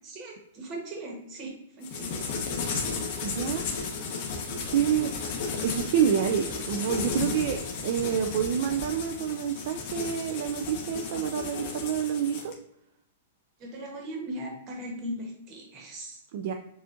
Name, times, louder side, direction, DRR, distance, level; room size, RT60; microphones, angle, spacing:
voice 1, 0.0-2.2 4.7-5.1 12.0-12.1 13.6-16.2, right 1 dB, 30° right, 1 dB, 1.1 m, -39 dB
sound 1, 1.8-12.5, left 4 dB, 45° left, 1.0 m, -34 dB
voice 2, 3.2-3.6 4.7-5.2 5.6-12.5 16.3-16.5, right 8 dB, 50° right, 5 dB, 0.3 m, -28 dB
6.8 x 2.5 x 2.5 m, 0.76 s
supercardioid pair, 165°, 0 cm